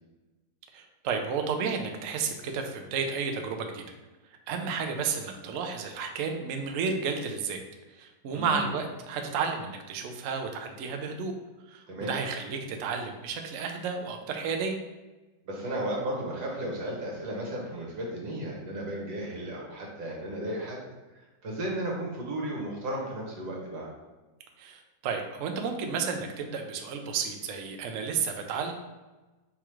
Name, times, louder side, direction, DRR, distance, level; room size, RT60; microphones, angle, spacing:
voice 1, 0.7-3.8 4.5-7.6 7.9-11.3 11.7-14.8 24.6-28.7, right 5 dB, 85° right, 4 dB, 0.7 m, -32 dB
voice 2, 8.3-8.7 11.9-12.1 15.4-20.8 21.1-23.9, right 1 dB, 60° right, -2 dB, 1.6 m, -34 dB
3.5 x 3.0 x 4.7 m, 1.2 s
omnidirectional pair, 2.0 m